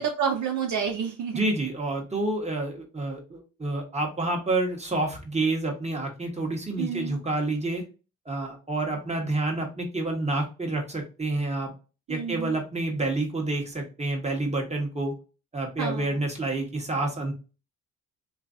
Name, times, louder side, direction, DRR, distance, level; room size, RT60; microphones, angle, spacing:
voice 1, 0.0-1.5 6.8-7.2 12.1-12.6 15.8-16.1, right 7 dB, 55° right, 3 dB, 0.5 m, -29 dB
voice 2, 1.3-7.8 8.2-11.7 12.1-15.1 15.5-17.3, right 2 dB, 20° right, 1 dB, 1.2 m, -28 dB
3.1 x 2.5 x 2.5 m, 0.33 s
hypercardioid pair, 50°, 36 cm